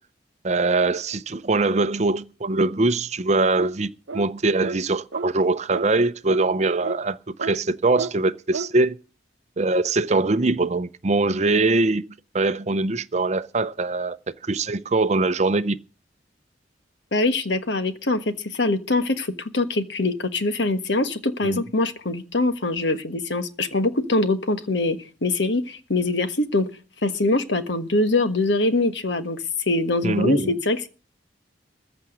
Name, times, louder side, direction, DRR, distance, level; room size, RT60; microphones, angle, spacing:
voice 1, 0.4-9.0 9.6-12.1 12.3-14.2 14.4-15.8 21.4-21.6 30.0-30.5, right 3 dB, 35° right, 0.6 m, -22 dB
sound 1, 3.6-3.8 4.1-4.3 4.6-4.8 5.1-5.3 5.7-5.9 6.3-6.4 6.8-7.0 7.4-7.6 7.9-8.1 8.5-8.7, right 3 dB, 85° right, 0.8 m, -31 dB
voice 2, 17.1-26.7 27.0-29.4 29.7-30.9, left 2 dB, 70° left, 1.4 m, -23 dB
14.5 x 6.0 x 9.5 m
head